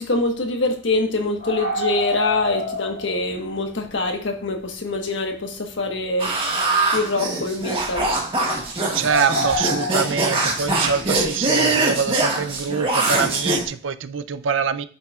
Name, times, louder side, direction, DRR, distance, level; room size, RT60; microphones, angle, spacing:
voice 1, 0.0-6.3 6.9-8.1, left 2 dB, 65° left, 1.3 m, -24 dB
sound 1, 1.4-3.2 3.4-3.5 6.0-6.7 7.1-7.4 9.0-10.4, equal, 45° left, 1.9 m, -27 dB
sound 2, 6.2-13.6, right 2 dB, 25° right, 1.5 m, -22 dB
voice 2, 8.9-14.8, right 6 dB, 70° right, 0.4 m, -24 dB
9.3 x 6.9 x 2.4 m
head